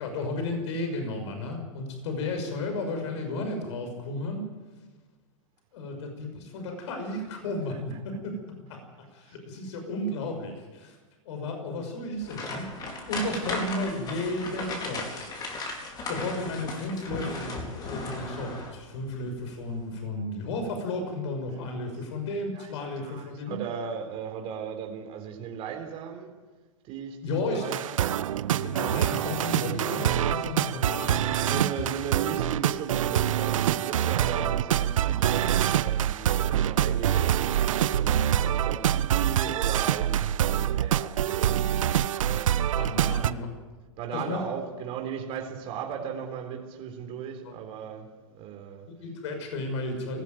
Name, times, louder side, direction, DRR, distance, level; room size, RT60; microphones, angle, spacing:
voice 1, 0.0-4.5 5.7-11.0 11.2-15.1 15.6-15.7 16.1-23.6 27.2-27.7 28.6-31.7 42.8-43.5 44.1-44.5 47.4-47.5 48.9-50.2, left 2 dB, 60° left, 6.0 m, -33 dB
sound 1, 12.2-18.9 19.2-19.4 19.9-20.0, left 2 dB, 25° left, 4.3 m, -36 dB
voice 2, 22.6-26.3 26.8-28.2 29.6-29.7 31.4-42.0 43.0-43.3 44.0-48.9, right 7 dB, 35° right, 3.8 m, -37 dB
sound 2, 27.6-43.3, right 11 dB, 75° right, 0.8 m, -25 dB
19.0 x 15.0 x 9.2 m
hypercardioid pair, 135°, 17 cm